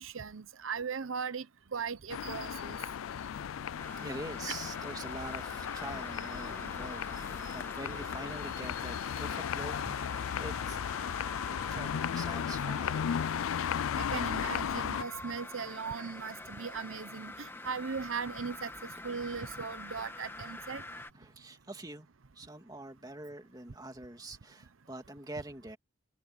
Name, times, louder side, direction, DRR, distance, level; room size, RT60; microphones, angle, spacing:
voice 1, 0.0-1.4 1.7-2.8 14.0-17.3 17.6-18.7 19.0-20.8, right 5 dB, 80° right, 0.8 m, -38 dB
sound 1, 2.1-15.0, left 8 dB, 90° left, 0.4 m, -35 dB
sound 2, 3.8-21.1, left 2 dB, 10° left, 1.5 m, -45 dB
voice 2, 4.0-10.8 11.5-13.3 19.1-19.2 20.9-22.1 22.4-25.8, right 2 dB, 20° right, 2.5 m, -45 dB
head